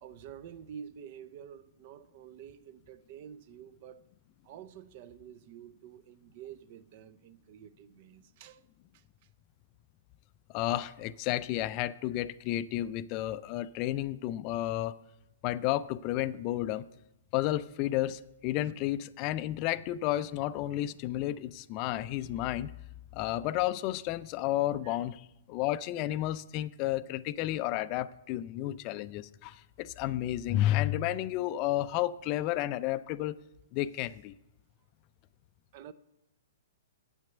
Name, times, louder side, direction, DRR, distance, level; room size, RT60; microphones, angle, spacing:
voice 1, 0.0-4.1 4.4-8.7 8.9-9.0 18.6-18.7 24.8-25.0 35.7-35.9, right 9 dB, 45° right, 0.5 m, -49 dB
voice 2, 10.5-14.9 15.4-16.8 17.3-22.7 23.1-33.4 33.7-34.3, left 14 dB, 40° left, 0.3 m, -32 dB
8.1 x 5.9 x 8.0 m
hypercardioid pair, 120°, 0 cm